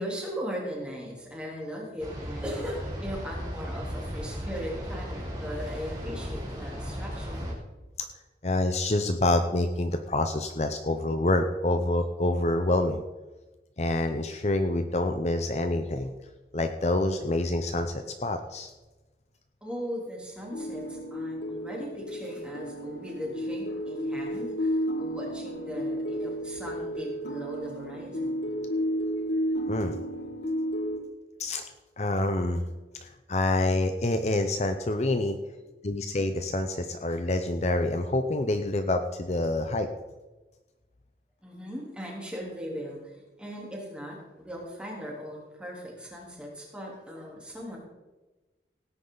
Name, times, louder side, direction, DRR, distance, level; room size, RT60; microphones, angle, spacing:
voice 1, 0.0-7.5 19.6-28.5 41.4-47.8, equal, 5° right, -3 dB, 3.4 m, -38 dB
sound 1, 2.0-7.5, equal, 20° right, 3.1 m, -36 dB
voice 2, 8.4-13.0 13.8-16.1 16.5-18.7 29.7-30.0 31.4-31.6 32.0-32.6 33.0-35.4 35.8-39.9, left 2 dB, 40° left, 7 dB, 0.7 m, -27 dB
sound 2, 20.5-31.0, equal, 80° left, 2.0 m, -32 dB
17.5 x 9.7 x 4.0 m, 1.2 s
head